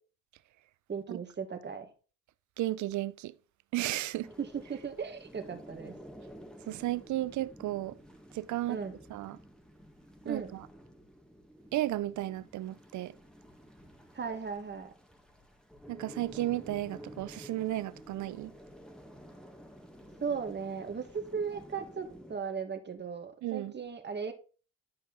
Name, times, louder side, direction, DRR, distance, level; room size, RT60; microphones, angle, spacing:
voice 1, 0.9-1.9 4.4-6.0 8.7-9.0 10.3-10.5 14.1-14.9 20.2-24.3, right 6 dB, 35° right, 2.0 m, -37 dB
voice 2, 2.6-3.3 3.7-4.3 6.7-8.0 8.3-8.8 9.1-9.4 10.3-10.7 11.7-13.1 15.9-18.5 23.4-23.7, right 15 dB, 75° right, 0.6 m, -34 dB
sound 1, 4.2-22.4, equal, ahead, 1.9 m, -52 dB
11.0 x 5.5 x 4.0 m
cardioid pair, 90°, 30 cm